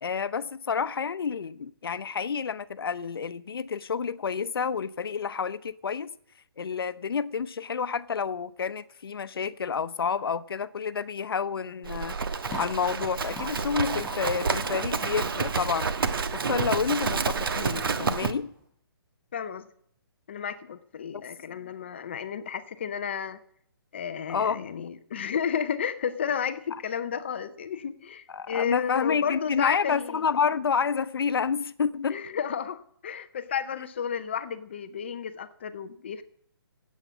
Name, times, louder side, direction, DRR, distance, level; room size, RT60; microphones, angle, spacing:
voice 1, 0.0-6.1 6.6-12.2 12.6-15.9 16.3-18.5 21.1-21.3 24.3-24.6 28.3-32.2, left 6 dB, 65° left, 0.8 m, -29 dB
sound 1, 11.9-18.6, left 1 dB, 10° left, 6.6 m, -46 dB
Livestock farm animals working animals, 11.9-18.3, right 5 dB, 60° right, 1.3 m, -29 dB
voice 2, 19.3-19.7 20.3-23.4 23.9-30.2 32.1-36.2, left 7 dB, 25° left, 0.6 m, -32 dB
17.5 x 8.3 x 7.3 m
hypercardioid pair, 175°, 13 cm